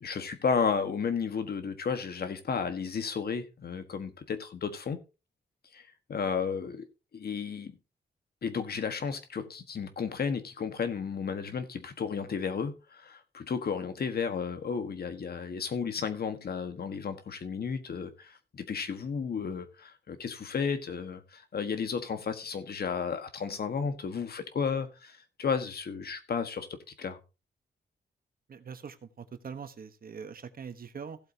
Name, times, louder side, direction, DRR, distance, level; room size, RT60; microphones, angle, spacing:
voice 1, 0.0-5.0 5.7-6.9 7.1-7.8 8.4-27.2, left 6 dB, 65° left, 1.6 m, -33 dB
voice 2, 28.5-31.2, right 6 dB, 60° right, 1.2 m, -43 dB
16.0 x 7.9 x 2.8 m
wide cardioid pair, 100°, 18 cm